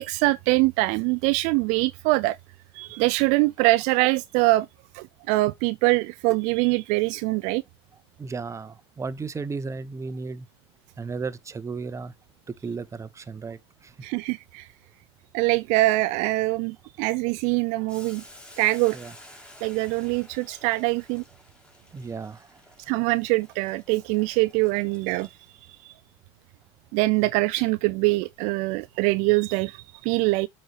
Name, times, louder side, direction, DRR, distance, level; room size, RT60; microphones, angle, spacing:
voice 1, 0.0-2.4 2.7-4.7 4.9-7.6 14.0-14.7 15.3-18.2 18.6-19.0 19.6-21.2 22.9-25.3 26.9-30.5, right 21 dB, 60° right, 0.4 m, -23 dB
voice 2, 8.2-10.5 11.0-12.1 12.5-13.9 18.9-19.1 21.9-22.6, right 4 dB, 20° right, 0.9 m, -34 dB
Boiling, 17.9-25.7, left 1 dB, 5° left, 2.7 m, -51 dB
7.9 x 4.4 x 4.9 m
hypercardioid pair, 80°, 14 cm